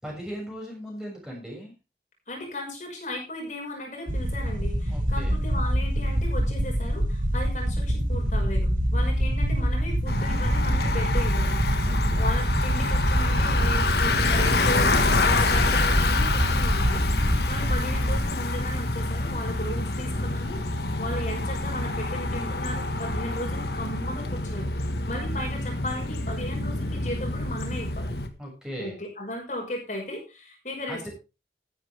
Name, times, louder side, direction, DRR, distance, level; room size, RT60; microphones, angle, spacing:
voice 1, 0.0-1.7 4.9-5.3 8.9-9.2 11.8-12.2 17.2-17.6 28.4-28.9 30.9-31.1, equal, 5° right, -3 dB, 6.6 m, -39 dB
voice 2, 2.3-17.1 17.5-28.2 28.8-31.1, left 1 dB, 45° left, 0 dB, 5.7 m, -36 dB
sound 1, 4.1-18.2, equal, 45° right, 1.9 m, -25 dB
Bicycle, 10.1-28.3, left 2 dB, 65° left, 1.6 m, -27 dB
14.0 x 12.0 x 3.5 m, 0.29 s
head